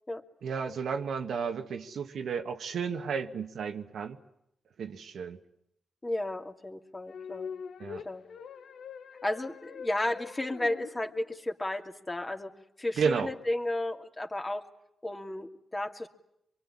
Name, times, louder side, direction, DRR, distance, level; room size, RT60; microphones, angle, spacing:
voice 1, 0.4-4.2 4.8-5.4 7.8-8.0 13.0-13.3, right 6 dB, 80° right, 6 dB, 1.6 m, -32 dB
voice 2, 6.0-7.5 8.0-8.2 9.2-12.5 12.8-14.6 15.0-16.1, left 1 dB, 25° left, 4 dB, 2.7 m, -33 dB
sound 1, 7.1-11.5, left 7 dB, 80° left, 1.0 m, -44 dB
24.5 x 23.5 x 10.0 m, 0.79 s
cardioid pair, 55°, 0 cm